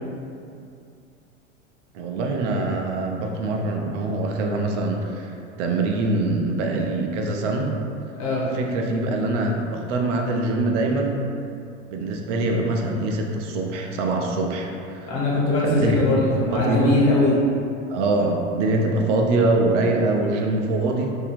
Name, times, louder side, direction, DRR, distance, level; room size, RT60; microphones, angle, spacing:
voice 1, 1.9-7.7 8.5-11.2 11.9-15.1 15.6-16.0 16.5-16.9 17.9-21.2, right 2 dB, 70° right, 2 dB, 0.6 m, -24 dB
voice 2, 15.1-17.4, left 2 dB, 55° left, -5 dB, 1.3 m, -21 dB
2.8 x 2.7 x 4.1 m, 2.5 s
hypercardioid pair, 100°, 37 cm